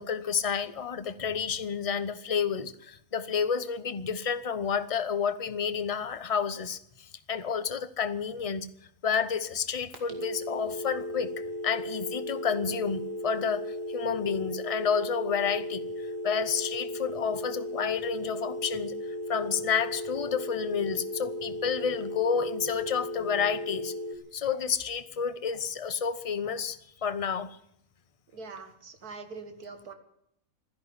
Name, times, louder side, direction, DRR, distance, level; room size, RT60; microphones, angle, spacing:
voice 1, 0.0-8.7 9.0-19.0 19.3-23.9 24.3-27.6, left 6 dB, 30° left, 0.7 m, -30 dB
sound 1, 9.9-24.2, left 1 dB, 60° right, 2.7 m, -36 dB
voice 2, 28.3-29.9, right 4 dB, 80° right, 2.3 m, -43 dB
14.0 x 11.0 x 9.6 m
omnidirectional pair, 1.6 m